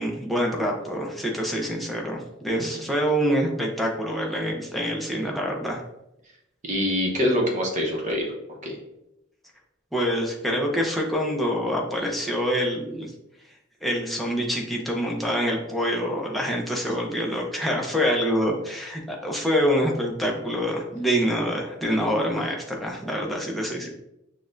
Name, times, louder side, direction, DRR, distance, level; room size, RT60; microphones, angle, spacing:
voice 1, 0.0-5.8 9.9-13.1 13.8-23.9, equal, ahead, -2 dB, 0.6 m, -26 dB
voice 2, 6.6-8.3 8.6-8.8, left 1 dB, 40° right, -1 dB, 0.9 m, -25 dB
6.2 x 2.3 x 2.5 m, 0.85 s
head